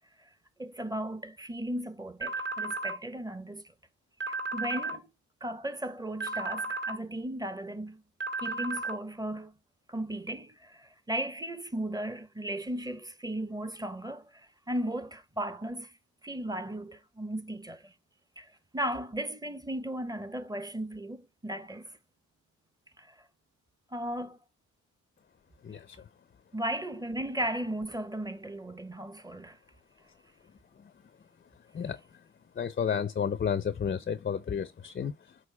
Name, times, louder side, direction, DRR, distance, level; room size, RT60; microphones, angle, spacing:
voice 1, 0.6-3.6 4.3-5.1 5.4-8.0 8.4-9.5 9.9-16.0 16.2-17.9 18.4-22.0 23.0-23.1 23.9-24.4 26.5-29.6, right 1 dB, 15° right, 1.1 m, -36 dB
sound 1, 2.2-3.0 4.2-5.0 6.2-7.0 8.2-9.0, right 3 dB, 40° right, 2.0 m, -34 dB
voice 2, 25.6-26.0 30.8-30.9 31.7-32.2 32.5-35.4, left 7 dB, 30° left, 0.6 m, -32 dB
6.4 x 4.5 x 3.4 m
cardioid pair, 90°, 30 cm